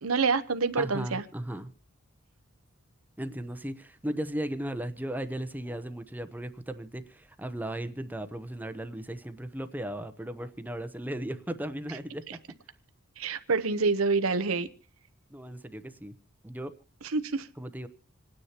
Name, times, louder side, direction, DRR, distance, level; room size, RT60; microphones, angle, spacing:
voice 1, 0.0-1.2 13.2-14.7 17.1-17.5, right 4 dB, 90° right, 0.9 m, -27 dB
voice 2, 0.8-1.7 3.2-12.4 15.3-16.1 16.4-16.7 17.6-17.9, right 1 dB, 10° right, 0.8 m, -36 dB
27.0 x 9.8 x 2.9 m
head